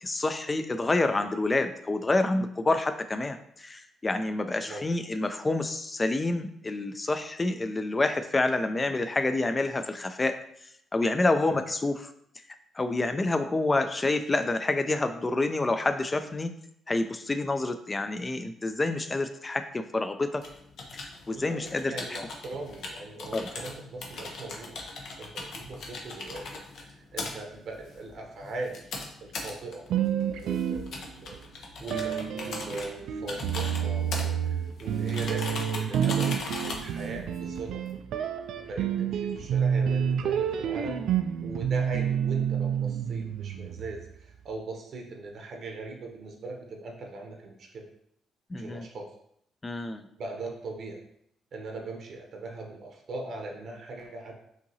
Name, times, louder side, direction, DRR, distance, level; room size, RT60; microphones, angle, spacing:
voice 1, 0.0-10.4 10.9-12.1 12.7-16.5 16.9-20.4 20.9-22.2 23.3-23.5 48.5-48.9 49.6-50.1, left 2 dB, 25° left, 9 dB, 0.4 m, -28 dB
voice 2, 4.6-5.1 11.4-11.6 21.3-24.7 25.2-29.8 30.3-31.5 31.8-36.3 36.6-37.8 38.5-41.0 41.4-47.9 48.5-49.1 50.2-51.0 51.5-54.3, right 3 dB, 60° right, 2 dB, 0.7 m, -40 dB
sound 1, 20.4-37.9, left 3 dB, 70° left, 0.8 m, -40 dB
sound 2, 29.9-31.4 31.9-44.1, right 8 dB, 80° right, 0.3 m, -29 dB
5.6 x 2.8 x 2.7 m, 0.71 s
cardioid pair, 90°, 0 cm